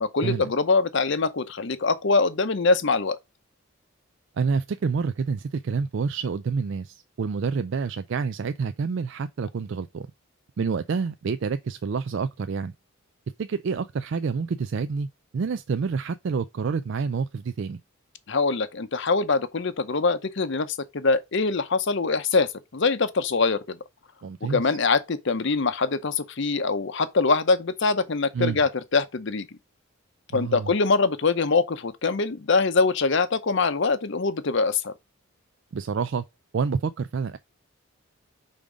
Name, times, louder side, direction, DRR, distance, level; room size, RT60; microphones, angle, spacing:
voice 1, 0.0-3.2 18.3-23.8 24.4-29.5 30.3-34.9, left 4 dB, 55° left, 0.7 m, -23 dB
voice 2, 4.4-10.1 10.6-12.7 13.4-15.1 15.3-17.8 24.2-24.8 28.3-28.6 30.3-30.7 35.7-36.2 36.5-37.4, right 5 dB, 55° right, 0.3 m, -28 dB
5.3 x 3.6 x 4.9 m
head